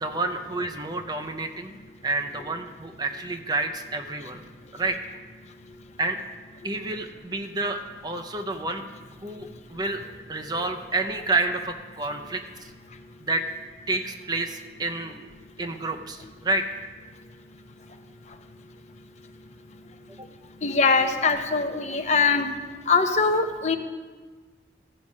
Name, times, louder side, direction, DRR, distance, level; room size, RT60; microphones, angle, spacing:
voice 1, 0.0-1.7 2.0-4.4 4.7-5.0 6.0-6.2 6.6-8.8 9.2-10.0 10.3-12.4 13.2-13.4 13.9-15.3 15.6-16.6, right 2 dB, 25° right, 5 dB, 0.5 m, -29 dB
voice 2, 20.6-22.5 22.9-23.8, left 4 dB, 40° left, 7 dB, 0.6 m, -22 dB
14.0 x 4.8 x 5.3 m, 1.4 s
head